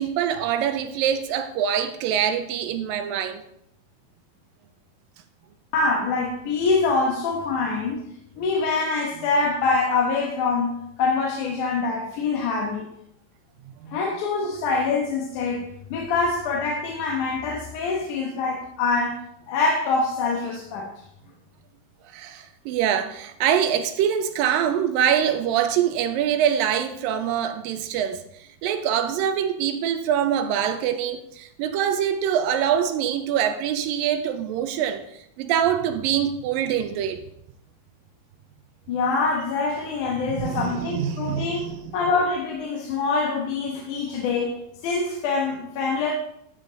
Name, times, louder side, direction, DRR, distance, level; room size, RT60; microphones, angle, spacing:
voice 1, 0.0-3.4 13.8-14.0 22.1-28.2 28.6-35.0 35.4-37.2 40.3-41.8, right 9 dB, 80° right, 2.3 m, -24 dB
voice 2, 5.7-8.0 8.4-12.9 13.9-20.9 38.9-44.5 44.8-46.1, left 4 dB, 65° left, 2.5 m, -25 dB
12.5 x 7.4 x 3.9 m
omnidirectional pair, 4.1 m